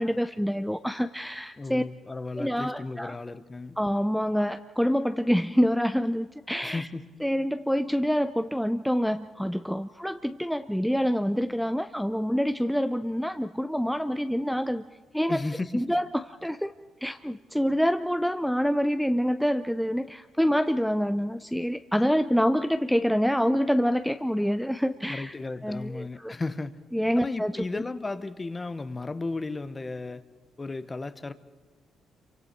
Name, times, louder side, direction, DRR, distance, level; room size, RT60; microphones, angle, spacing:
voice 1, 0.0-1.8 2.4-3.2 3.8-6.9 7.2-14.8 15.1-15.4 15.7-16.1 16.4-16.7 17.0-25.3 25.6-26.3 26.9-27.8, equal, ahead, 0.6 m, -26 dB
voice 2, 1.6-3.8 6.6-7.1 15.3-15.8 25.1-26.8 27.2-30.2 30.6-31.3, left 3 dB, 25° left, 1.0 m, -34 dB
27.0 x 24.5 x 4.5 m
cardioid pair, 90°, 0 cm